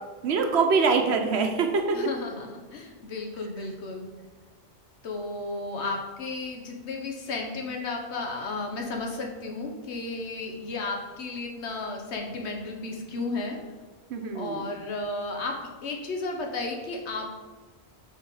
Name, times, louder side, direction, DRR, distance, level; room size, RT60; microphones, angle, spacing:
voice 1, 0.2-2.0 14.1-14.7, right 4 dB, 75° right, 4 dB, 1.0 m, -24 dB
voice 2, 1.9-4.1 5.0-13.6 14.3-15.6 15.8-17.3, left 3 dB, 80° left, 2 dB, 1.2 m, -33 dB
5.5 x 3.8 x 4.8 m, 1.3 s
omnidirectional pair, 1.1 m